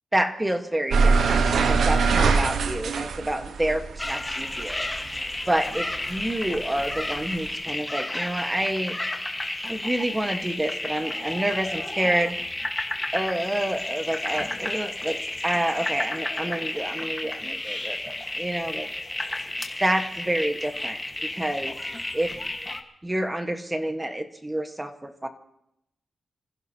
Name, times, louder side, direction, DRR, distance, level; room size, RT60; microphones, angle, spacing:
voice 1, 0.1-4.9 5.5-9.0 9.7-12.4 13.1-15.2 15.4-18.8 19.8-21.0 21.3-21.7 22.1-22.3 23.0-25.3, right 1 dB, 10° right, 6 dB, 1.4 m, -28 dB
sound 1, 0.9-5.6 5.9-7.5, right 4 dB, 80° right, 1.1 m, -23 dB
sound 2, 4.0-22.8, left 1 dB, 10° left, 1.5 m, -32 dB
28.0 x 16.0 x 2.9 m, 0.80 s
wide cardioid pair, 150°, 0 cm